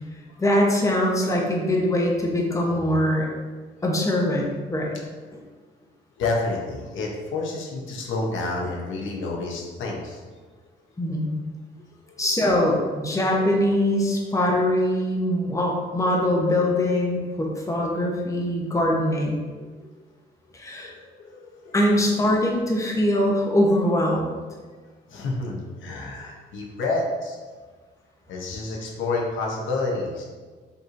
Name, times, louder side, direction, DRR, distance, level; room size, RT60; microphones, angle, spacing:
voice 1, 0.4-3.3 3.8-4.9 11.0-11.3 12.2-19.4 20.5-20.9 21.7-24.3, left 1 dB, 15° left, -1 dB, 0.8 m, -22 dB
voice 2, 6.2-10.2 20.8-20.9 21.2-21.7 25.1-27.4 28.3-30.2, left 3 dB, 75° left, -1 dB, 0.8 m, -29 dB
5.2 x 3.0 x 2.6 m, 1.4 s
cardioid pair, 90°, 20 cm